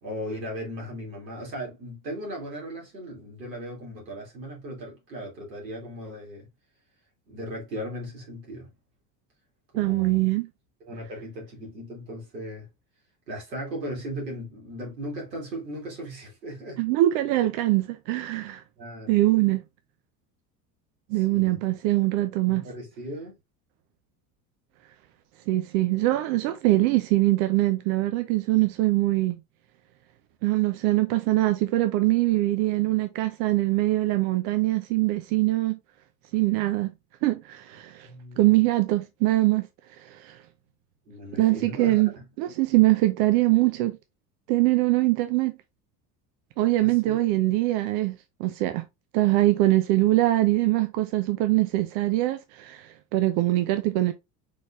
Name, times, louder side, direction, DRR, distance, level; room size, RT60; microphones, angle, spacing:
voice 1, 0.0-6.5 7.3-8.7 9.7-10.3 10.8-12.7 13.3-16.8 18.8-19.2 21.1-21.6 22.4-23.4 38.0-38.5 41.1-42.3 46.8-47.2, equal, 80° right, 2.9 m, -37 dB
voice 2, 9.8-10.5 16.8-18.6 19.1-19.6 21.1-22.6 25.5-29.4 30.4-35.8 36.3-36.9 37.2-38.1 38.4-39.7 40.0-40.4 41.3-42.1 42.4-44.0 44.5-45.5 46.6-48.8 49.1-54.1, right 17 dB, 55° right, 0.7 m, -23 dB
5.1 x 4.1 x 2.5 m
hypercardioid pair, 70°, 49 cm